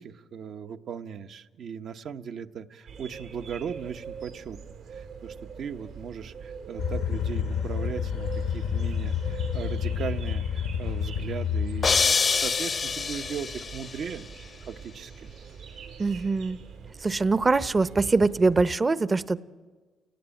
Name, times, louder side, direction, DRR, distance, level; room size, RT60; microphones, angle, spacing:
voice 1, 0.0-14.3 14.7-15.3, right 7 dB, 65° right, 7 dB, 1.0 m, -38 dB
sound 1, 2.9-18.6, right 6 dB, 85° right, 3.2 m, -43 dB
sound 2, 6.8-12.1, left 7 dB, 85° left, 1.0 m, -29 dB
sound 3, 11.8-13.9, left 5 dB, 40° left, 0.7 m, -25 dB
voice 2, 16.0-16.6 17.0-19.4, right 3 dB, 25° right, 15 dB, 0.7 m, -23 dB
29.0 x 18.5 x 9.0 m, 1.5 s
cardioid pair, 90°, 0 cm